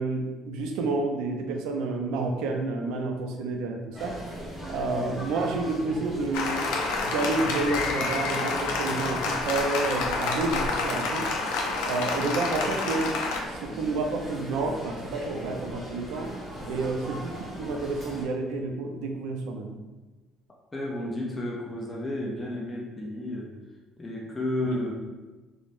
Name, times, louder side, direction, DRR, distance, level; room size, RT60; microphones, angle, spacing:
voice 1, 0.0-4.2 4.7-11.3 11.9-13.1 13.5-16.3 16.6-17.3 17.6-19.7 24.7-24.8, right 3 dB, 85° right, 3 dB, 0.4 m, -30 dB
sound 1, 3.9-18.2, equal, 5° right, 0.8 m, -39 dB
voice 2, 4.9-5.2 16.5-16.9 20.7-23.5 24.0-24.9, left 1 dB, 15° left, -2 dB, 0.4 m, -32 dB
Applause, 6.3-13.4, left 3 dB, 90° left, 0.4 m, -29 dB
3.2 x 2.0 x 2.5 m, 1.2 s
cardioid pair, 120°, 0 cm